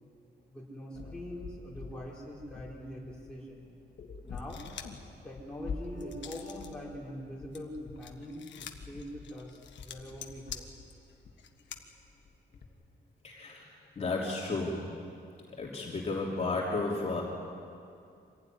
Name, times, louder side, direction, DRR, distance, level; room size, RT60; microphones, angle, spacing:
voice 1, 0.5-3.7 4.2-4.6 5.2-10.7, equal, 5° left, -5 dB, 4.3 m, -43 dB
sound 1, 0.9-12.7, left 5 dB, 60° left, 2.3 m, -47 dB
sound 2, 4.4-5.1 5.5-6.7 7.1-11.8, left 9 dB, 85° left, 1.6 m, -47 dB
Bass guitar, 5.9-8.9, equal, 65° right, 2.9 m, -51 dB
voice 2, 13.2-13.7 14.0-14.8 15.6-17.2, left 3 dB, 35° left, -4 dB, 3.1 m, -32 dB
25.5 x 16.0 x 9.8 m, 2.5 s
wide cardioid pair, 175°, 18 cm